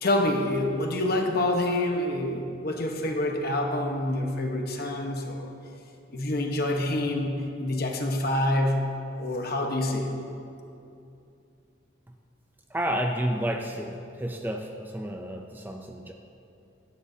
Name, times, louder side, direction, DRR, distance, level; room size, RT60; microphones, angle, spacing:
voice 1, 0.0-5.5 6.1-8.8 9.2-10.1, left 1 dB, 50° left, 2 dB, 1.1 m, -27 dB
voice 2, 12.7-16.1, equal, 10° right, 3 dB, 0.4 m, -31 dB
16.5 x 11.0 x 2.8 m, 2.7 s
head